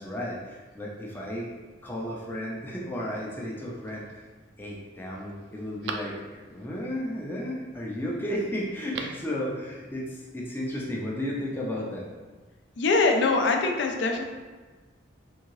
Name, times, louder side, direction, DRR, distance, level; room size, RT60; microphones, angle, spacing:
voice 1, 0.0-1.5 1.8-4.2 4.6-12.1, equal, 10° left, -4 dB, 0.4 m, -33 dB
Telephone, 3.5-4.1 4.7-4.8 5.1-6.7 8.7-9.3 9.6-9.7, right 4 dB, 65° right, 0.3 m, -40 dB
voice 2, 12.8-14.2, left 3 dB, 70° left, 3 dB, 0.4 m, -23 dB
3.6 x 2.7 x 3.0 m, 1.3 s
head